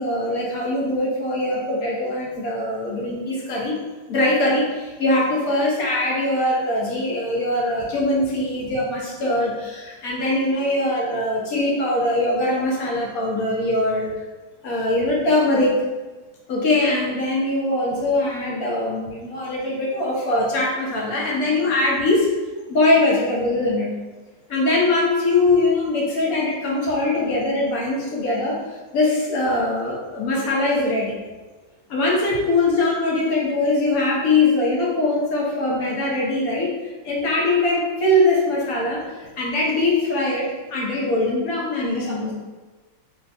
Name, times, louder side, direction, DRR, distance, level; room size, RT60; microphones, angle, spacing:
voice 1, 0.0-3.8 4.1-14.1 14.6-15.8 16.5-22.3 22.7-23.9 24.5-28.6 28.9-31.1 31.9-42.3, left 2 dB, 55° left, -4 dB, 1.3 m, -22 dB
3.4 x 3.0 x 4.2 m, 1.2 s
omnidirectional pair, 2.0 m